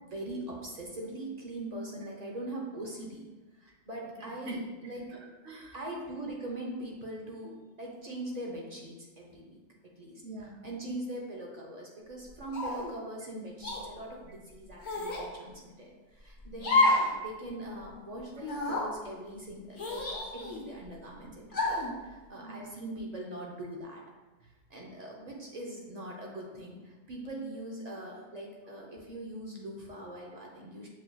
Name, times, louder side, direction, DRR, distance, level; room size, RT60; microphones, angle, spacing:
voice 1, 0.0-3.2 3.5-5.0 5.7-9.6 10.0-10.2 10.6-20.1 20.3-24.0 24.4-30.9, right 1 dB, 50° right, -2 dB, 0.6 m, -41 dB
voice 2, 4.0-6.0 10.2-10.7 16.5-16.6 22.4-22.8, right 1 dB, 80° right, 0 dB, 1.0 m, -45 dB
sound 1, 12.5-12.9 13.6-13.8 14.8-15.3 16.6-17.1 17.5-17.6 18.4-18.9 19.8-20.7 21.5-21.9, left 2 dB, 90° left, 1.2 m, -28 dB
6.3 x 2.6 x 2.2 m, 1.2 s
omnidirectional pair, 1.1 m